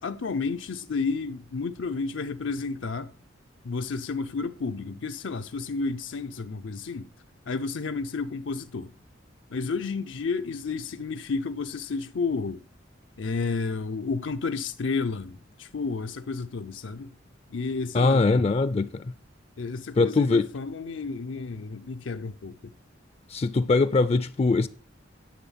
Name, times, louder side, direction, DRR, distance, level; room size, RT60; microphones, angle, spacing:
voice 1, 0.0-3.1 3.6-7.1 7.5-8.9 9.5-12.6 13.2-17.2 17.5-18.4 19.6-22.7, left 4 dB, 80° left, 0.6 m, -31 dB
voice 2, 17.9-19.1 20.0-20.5 23.3-24.7, left 3 dB, 35° left, 0.4 m, -22 dB
10.5 x 7.0 x 5.7 m
head